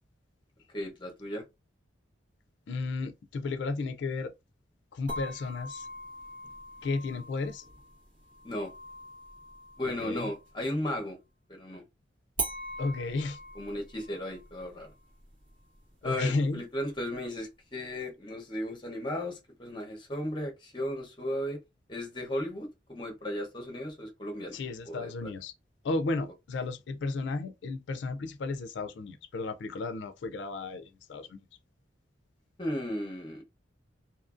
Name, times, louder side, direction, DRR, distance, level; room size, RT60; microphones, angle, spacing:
voice 1, 0.7-1.4 8.4-8.7 9.8-11.2 11.5-11.8 13.6-14.9 16.0-21.6 21.9-24.6 24.9-25.3 32.6-33.4, left 1 dB, 25° left, 0.7 m, -35 dB
voice 2, 2.7-4.3 4.9-5.9 6.8-7.6 9.8-10.3 12.8-13.4 16.0-16.6 24.5-25.5 25.8-31.4, left 3 dB, 70° left, 0.4 m, -33 dB
sound 1, 5.1-10.7 12.4-17.4, right 1 dB, 80° right, 1.4 m, -42 dB
2.7 x 2.5 x 2.4 m
head